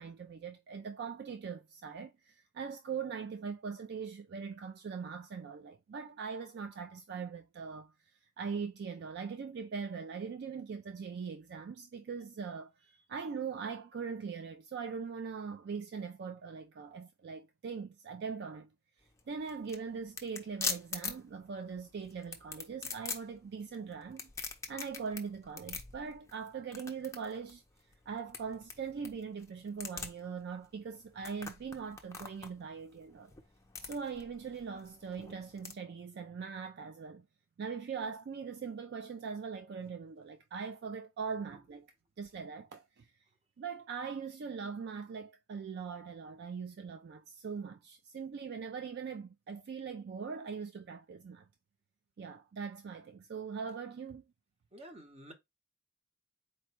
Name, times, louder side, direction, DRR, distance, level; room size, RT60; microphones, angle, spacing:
voice 1, 0.0-12.7 13.1-18.7 19.0-24.3 24.7-27.6 28.1-33.3 33.8-37.3 37.6-41.9 42.2-43.1 43.6-51.5 52.2-54.2, right 5 dB, 50° right, 0.3 m, -41 dB
sound 1, 19.0-35.7, left 5 dB, 15° left, 0.5 m, -44 dB
voice 2, 54.7-55.3, right 1 dB, 25° right, 0.8 m, -50 dB
4.2 x 2.2 x 4.4 m
head